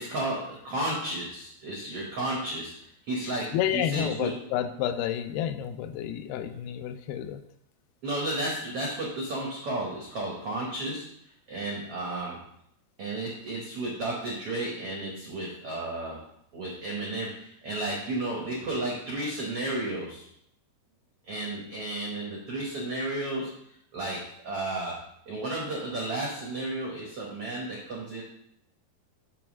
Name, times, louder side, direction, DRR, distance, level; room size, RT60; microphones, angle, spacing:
voice 1, 0.0-4.3 8.0-11.1 11.5-12.4 13.0-16.2 16.5-20.3 21.2-25.0 25.3-28.2, right 2 dB, 85° right, -3 dB, 1.2 m, -33 dB
voice 2, 3.2-7.4, left 10 dB, 85° left, 9 dB, 2.5 m, -30 dB
7.0 x 3.2 x 6.1 m, 0.74 s
omnidirectional pair, 4.5 m